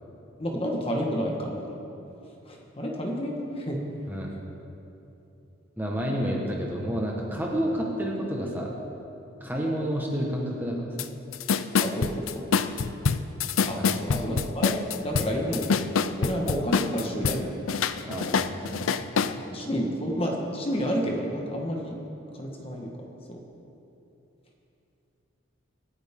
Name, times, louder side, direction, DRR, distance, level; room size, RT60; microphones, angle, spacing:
voice 1, 0.4-1.8 2.4-3.8 11.8-12.4 13.7-15.8 16.2-17.6 19.5-22.0 22.3-23.4, equal, 25° left, 0 dB, 1.4 m, -30 dB
voice 2, 5.8-8.7 9.4-11.1 13.8-14.0 15.3-15.4 18.0-19.4, equal, 10° right, -2 dB, 1.4 m, -30 dB
sound 1, 11.0-11.1 11.3-17.4 17.7-19.3, left 6 dB, 75° left, 0.5 m, -25 dB
26.5 x 8.9 x 3.7 m, 2.9 s
head